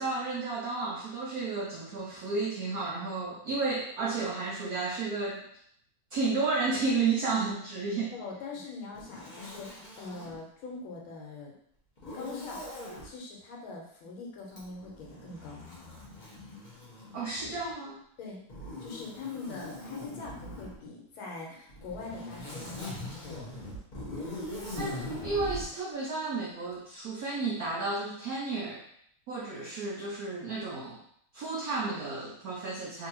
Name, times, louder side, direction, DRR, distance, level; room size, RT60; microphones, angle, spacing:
voice 1, 0.0-5.4 6.1-8.1 17.1-18.0 24.8-28.8 29.3-31.0 31.3-33.1, right 3 dB, 80° right, -3 dB, 0.8 m, -32 dB
voice 2, 8.1-11.5 12.1-12.7 13.0-15.6 18.2-18.4 18.8-23.5, left 4 dB, 85° left, -2 dB, 1.7 m, -42 dB
Zipper (clothing), 8.9-10.4 12.0-13.1 14.5-17.7 18.5-20.8 21.7-25.7, left 1 dB, 35° left, 0.7 m, -41 dB
3.6 x 2.6 x 2.9 m, 0.67 s
omnidirectional pair, 2.2 m